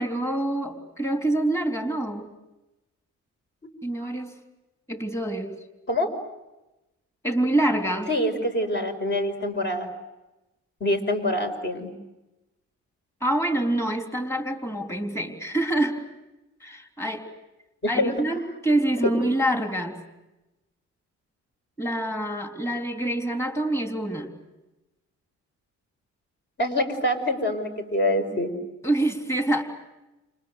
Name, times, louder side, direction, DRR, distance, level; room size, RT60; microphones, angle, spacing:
voice 1, 0.0-2.3 3.8-4.4 4.9-5.6 7.2-8.1 13.2-16.0 16.6-17.3 17.9-20.0 21.8-24.3 28.8-29.6, right 1 dB, 10° left, 4 dB, 3.6 m, -26 dB
voice 2, 8.1-9.9 10.8-11.9 17.8-18.2 19.0-19.1 26.6-28.5, left 1 dB, 40° left, 6 dB, 5.4 m, -25 dB
30.0 x 28.5 x 6.8 m, 1.0 s
cardioid pair, 90°, 30 cm